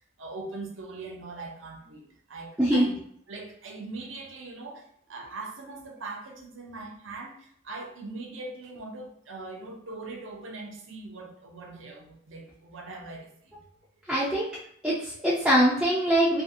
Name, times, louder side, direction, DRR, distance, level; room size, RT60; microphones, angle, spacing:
voice 1, 0.2-2.9 3.3-13.3, right 3 dB, 75° right, 1 dB, 0.6 m, -41 dB
voice 2, 2.6-2.9 14.1-14.5 14.8-16.4, equal, 5° right, -9 dB, 0.4 m, -23 dB
2.6 x 2.4 x 2.6 m, 0.66 s
head